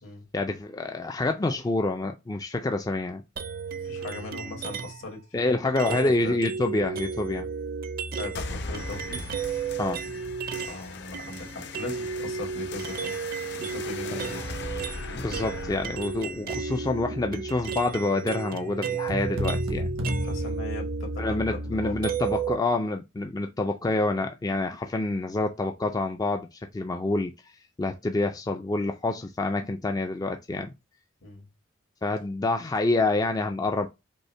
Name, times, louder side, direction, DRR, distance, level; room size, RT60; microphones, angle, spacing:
voice 1, 0.3-3.2 5.3-7.5 9.8-10.0 14.1-14.2 15.1-19.9 21.2-27.3 27.8-30.7 32.0-33.9, left 2 dB, 20° left, 0.3 m, -27 dB
sound 1, 3.4-5.1 5.8-10.8 11.1-22.6, right 5 dB, 45° right, 0.5 m, -33 dB
voice 2, 3.8-6.4 8.2-9.3 10.6-13.2 13.6-14.4 20.2-22.0 31.2-31.5, left 2 dB, 75° left, 1.9 m, -39 dB
sound 2, 8.3-17.4, left 3 dB, 55° left, 0.7 m, -39 dB
sound 3, 19.1-21.4, left 1 dB, 85° right, 1.1 m, -31 dB
5.3 x 2.1 x 4.3 m
head